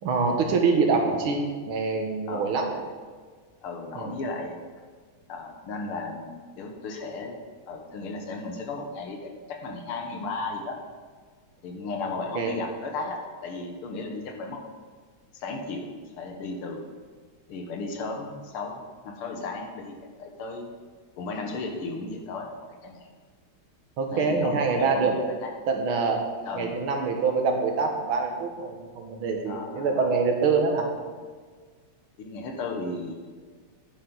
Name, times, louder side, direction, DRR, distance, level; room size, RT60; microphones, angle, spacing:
voice 1, 0.0-2.7 4.0-4.1 12.4-12.5 24.0-25.2 25.7-26.3 26.6-30.8, right 4 dB, 75° right, 2 dB, 2.1 m, -25 dB
voice 2, 2.3-2.8 3.6-4.6 5.3-7.4 7.7-10.8 11.6-14.6 15.3-16.9 17.5-20.7 21.2-23.1 24.1-25.5 26.5-26.8 29.5-30.2 32.2-33.3, left 3 dB, 85° left, 2 dB, 2.1 m, -35 dB
10.0 x 9.7 x 4.0 m, 1.6 s
omnidirectional pair, 2.3 m